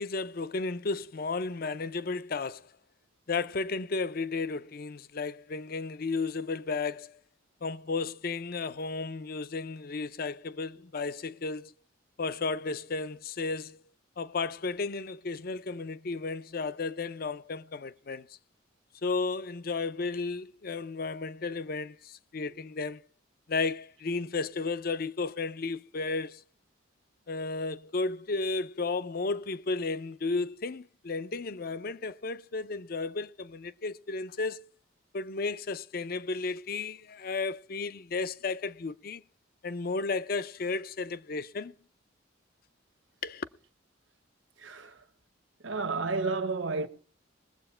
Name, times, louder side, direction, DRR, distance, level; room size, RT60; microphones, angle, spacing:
voice 1, 0.0-2.7 3.3-7.2 7.6-11.7 12.2-13.8 14.2-18.4 19.0-23.0 23.5-26.4 27.3-34.6 35.1-39.2 39.6-41.7 43.2-43.4, left 3 dB, 50° left, 0.5 m, -33 dB
voice 2, 44.6-45.0 45.6-46.9, right 3 dB, 75° right, 1.0 m, -31 dB
21.0 x 7.8 x 4.4 m
head